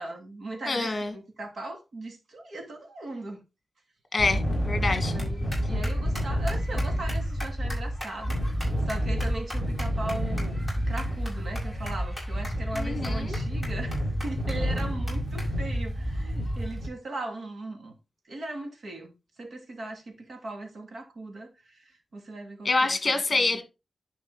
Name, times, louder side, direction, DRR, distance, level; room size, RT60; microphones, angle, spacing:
voice 1, 0.0-3.4 4.9-8.4 8.9-10.6 10.9-17.9 18.3-19.1 19.4-23.6, right 2 dB, 60° right, 2.4 m, -38 dB
voice 2, 0.7-1.1 4.1-5.1 12.7-13.4 22.6-23.6, left 3 dB, 35° left, 1.7 m, -26 dB
sound 1, 4.2-16.9, equal, 10° right, 5.1 m, -29 dB
11.0 x 4.6 x 3.9 m
wide cardioid pair, 130°, 0 cm